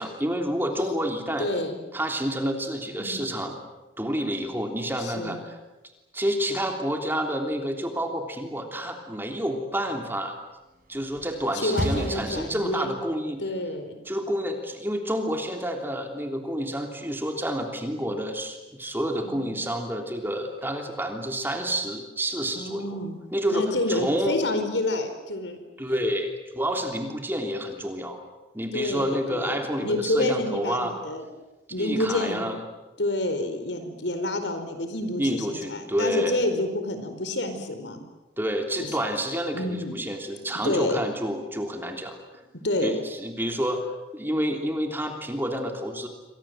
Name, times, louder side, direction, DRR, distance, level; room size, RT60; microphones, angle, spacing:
voice 1, 0.0-1.5 1.9-3.6 4.0-5.5 6.1-10.3 10.9-13.4 14.0-23.0 23.3-24.4 25.8-28.2 28.5-30.9 31.8-32.6 35.2-36.3 38.4-42.2 42.8-46.1, equal, 10° right, 4 dB, 3.3 m, -29 dB
voice 2, 1.4-1.8 3.0-3.3 5.0-5.4 11.5-12.9 13.4-14.0 19.2-19.6 22.5-23.2 23.5-25.6 28.7-31.3 31.7-32.5 33.0-38.0 38.8-39.0 39.5-40.0 40.6-41.0 42.6-43.0, left 1 dB, 80° left, 8 dB, 4.5 m, -28 dB
sound 1, 10.8-13.2, equal, 50° right, 5.1 m, -34 dB
28.5 x 24.0 x 7.9 m, 1.1 s
head